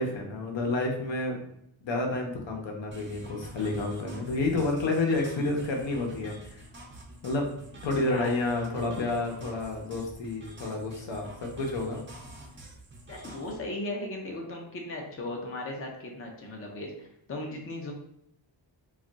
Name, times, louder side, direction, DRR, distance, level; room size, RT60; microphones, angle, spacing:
voice 1, 0.0-1.4 1.8-6.6 7.2-7.5 7.8-12.0, left 2 dB, 70° left, 1 dB, 0.7 m, -30 dB
sound 1, 2.9-13.6, right 1 dB, 25° right, 0.5 m, -47 dB
voice 2, 13.1-17.9, left 2 dB, 30° left, 0 dB, 0.5 m, -37 dB
2.4 x 2.2 x 3.8 m, 0.72 s
wide cardioid pair, 150°, 46 cm